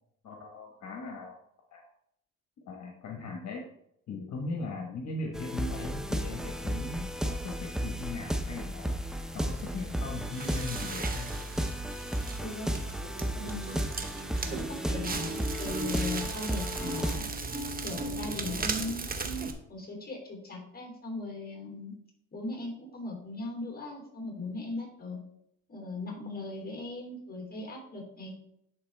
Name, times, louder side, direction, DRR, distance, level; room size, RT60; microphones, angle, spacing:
voice 1, 0.2-1.4 1.7-1.9 2.7-3.6 4.1-8.9 9.3-11.3, left 3 dB, 65° left, 0 dB, 1.4 m, -39 dB
sound 1, 5.3-17.2, right 1 dB, ahead, 0.6 m, -34 dB
Crackle, 9.3-19.5, right 3 dB, 30° right, 1.0 m, -37 dB
voice 2, 12.4-12.8 13.3-13.8 14.5-17.3 17.8-21.9 22.3-25.2 25.7-28.3, left 2 dB, 30° left, 1 dB, 3.1 m, -38 dB
11.0 x 4.1 x 3.4 m, 0.75 s
cardioid pair, 90°, 30 cm